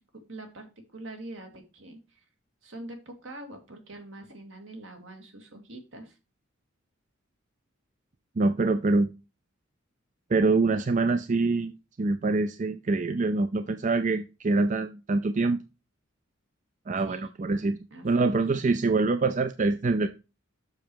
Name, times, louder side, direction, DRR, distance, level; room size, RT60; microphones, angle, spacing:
voice 1, 0.3-0.7 0.9-2.2 2.6-6.2 17.0-17.3 17.9-18.4, right 2 dB, 75° right, 4 dB, 2.3 m, -44 dB
voice 2, 8.4-9.1 10.3-11.7 12.0-15.6 16.9-17.8 18.0-20.1, right 3 dB, 40° right, 10 dB, 0.5 m, -25 dB
7.2 x 6.3 x 4.6 m, 0.29 s
head